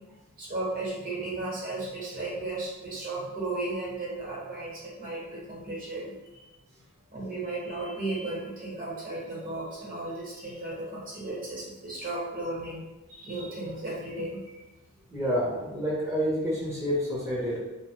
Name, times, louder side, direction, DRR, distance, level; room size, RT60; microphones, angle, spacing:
voice 1, 0.4-6.5 7.1-14.6, right 2 dB, 40° right, -5 dB, 1.0 m, -35 dB
voice 2, 15.1-17.6, equal, 15° right, -7 dB, 0.6 m, -28 dB
3.0 x 2.0 x 3.0 m, 1.0 s
head